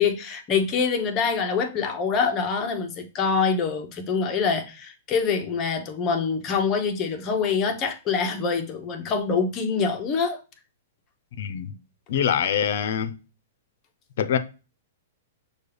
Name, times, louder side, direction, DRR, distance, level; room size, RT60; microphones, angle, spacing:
voice 1, 0.0-10.4, left 5 dB, 25° left, 0.8 m, -25 dB
voice 2, 11.4-11.7 12.1-13.2 14.2-14.4, left 8 dB, 60° left, 0.6 m, -24 dB
6.2 x 2.3 x 3.3 m
hypercardioid pair, 150°, 0 cm